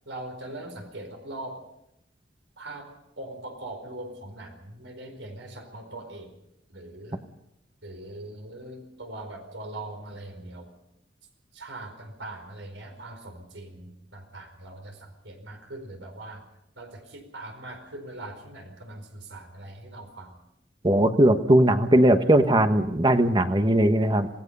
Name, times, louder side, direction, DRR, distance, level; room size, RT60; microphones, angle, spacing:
voice 1, 0.0-1.6 2.6-2.9 3.2-6.3 6.7-7.2 7.8-10.7 11.5-16.4 16.8-20.4, right 2 dB, 75° right, 5 dB, 4.7 m, -41 dB
voice 2, 20.8-24.3, right 1 dB, 25° right, 8 dB, 1.3 m, -19 dB
27.5 x 18.0 x 5.6 m, 0.82 s
head